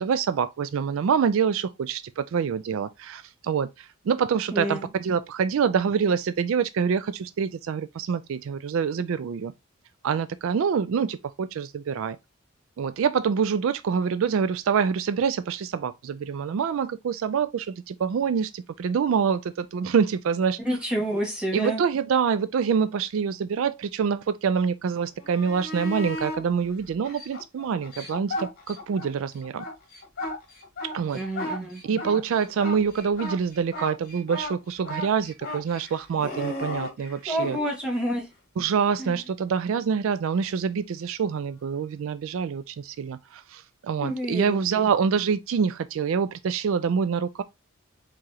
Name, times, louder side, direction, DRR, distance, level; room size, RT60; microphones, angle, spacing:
voice 1, 0.0-9.5 10.0-12.2 12.8-20.6 21.5-29.6 30.9-31.2 31.8-37.6 38.6-47.4, right 6 dB, 60° right, 0.3 m, -26 dB
voice 2, 4.5-4.8 20.6-21.8 31.1-31.8 37.3-38.3 39.0-39.1 44.0-44.6, equal, 5° right, 1.6 m, -28 dB
sound 1, 25.2-26.4 27.0-29.1 29.4-37.6 40.4-40.5, left 1 dB, 40° left, 1.7 m, -35 dB
4.7 x 3.8 x 2.8 m
head